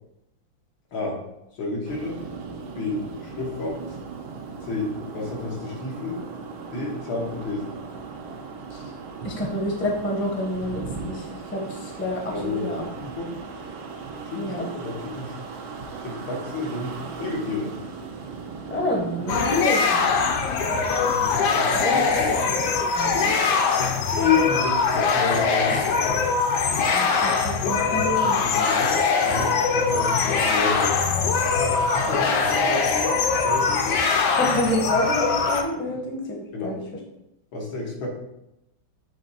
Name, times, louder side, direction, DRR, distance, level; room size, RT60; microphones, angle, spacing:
voice 1, 1.6-2.2 2.8-3.8 4.7-6.2 6.7-7.7 12.3-13.3 14.3-15.4 16.0-17.7 21.5-22.3 24.1-26.2 27.6-31.1 31.5-33.2 33.4-33.8 35.9-36.0 36.5-36.8 37.5-38.1, left 4 dB, 90° left, -2 dB, 2.3 m, -30 dB
sound 1, 1.9-19.5, right 4 dB, 85° right, 1.7 m, -37 dB
voice 2, 9.2-12.9 14.3-14.7 18.7-20.1 21.7-22.2 22.9-23.6 26.8-28.7 34.3-36.8, left 1 dB, 10° left, 0 dB, 0.5 m, -28 dB
sound 2, 19.3-35.6, left 5 dB, 65° left, 1.2 m, -22 dB
7.4 x 3.2 x 4.2 m, 0.87 s
omnidirectional pair, 2.2 m